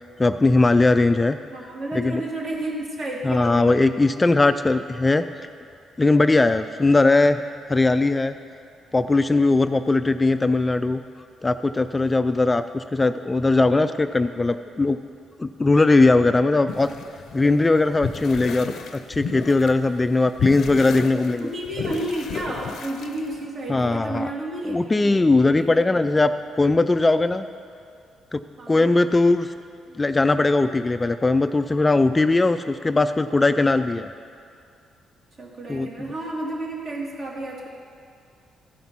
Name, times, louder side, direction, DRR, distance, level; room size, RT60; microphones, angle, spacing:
voice 1, 0.2-1.4 1.9-2.2 3.2-5.2 6.0-7.4 7.7-8.3 8.9-11.0 11.4-15.0 15.4-16.9 17.3-21.5 23.7-24.3 24.6-27.5 28.3-28.4 28.7-29.5 29.9-34.1 35.7-35.9, left 3 dB, 20° left, 10 dB, 0.3 m, -19 dB
voice 2, 1.5-3.8 21.1-26.0 28.6-29.0 35.4-37.7, right 1 dB, 55° right, -2 dB, 2.3 m, -32 dB
sound 1, 16.7-19.8 20.1-23.5, left 5 dB, 70° left, 0.6 m, -33 dB
14.5 x 5.4 x 6.0 m, 2.4 s
cardioid pair, 90°, 0 cm